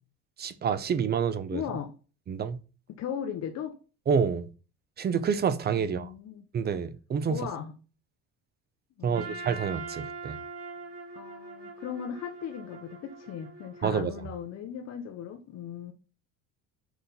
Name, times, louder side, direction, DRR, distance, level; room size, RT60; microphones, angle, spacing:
voice 1, 0.4-1.6 2.3-2.6 4.1-4.5 5.0-6.1 6.5-7.4 9.0-10.4 13.8-14.1, right 6 dB, 30° right, 0.7 m, -28 dB
voice 2, 1.5-1.9 2.9-3.8 5.8-6.4 7.2-7.7 9.0-9.4 11.1-15.9, left 8 dB, 50° left, 0.9 m, -37 dB
Trumpet, 9.1-14.2, right 3 dB, 45° right, 2.3 m, -42 dB
5.9 x 5.7 x 4.1 m
cardioid pair, 140°, 34 cm